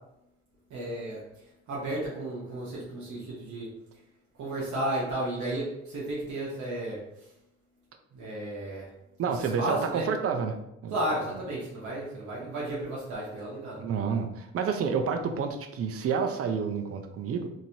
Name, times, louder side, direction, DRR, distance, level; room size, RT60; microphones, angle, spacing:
voice 1, 0.7-1.2 1.7-3.7 4.4-7.3 8.1-8.9 9.3-10.1 10.9-13.8, right 1 dB, 70° right, -5 dB, 0.9 m, -33 dB
voice 2, 9.2-10.6 10.8-10.9 13.8-17.5, right 6 dB, 50° right, 5 dB, 0.5 m, -29 dB
3.0 x 2.6 x 2.7 m, 0.84 s
cardioid pair, 90°, 30 cm